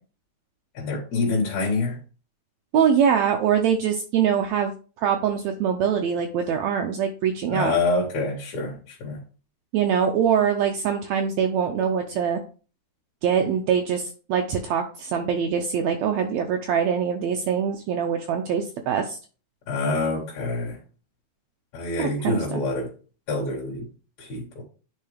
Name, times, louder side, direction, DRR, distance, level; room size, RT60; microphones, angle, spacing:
voice 1, 0.7-2.0 7.5-9.2 19.7-20.8 21.7-22.9 23.3-23.8 24.2-24.6, left 3 dB, 70° left, -2 dB, 2.9 m, -26 dB
voice 2, 2.7-4.7 5.0-7.8 9.7-12.4 13.2-19.2 22.0-22.6, right 7 dB, 75° right, 3 dB, 1.8 m, -23 dB
9.9 x 3.8 x 3.3 m, 0.37 s
omnidirectional pair, 3.4 m